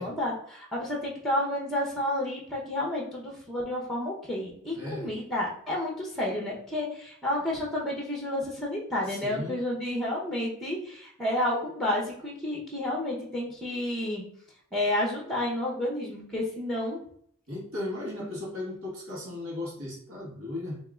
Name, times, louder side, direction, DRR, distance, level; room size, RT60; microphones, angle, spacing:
voice 1, 0.0-14.2 14.7-17.0, left 1 dB, ahead, -2 dB, 0.8 m, -30 dB
voice 2, 4.7-5.1 9.1-9.6 17.5-20.8, left 1 dB, 70° right, -4 dB, 1.7 m, -36 dB
3.7 x 3.0 x 3.6 m, 0.65 s
head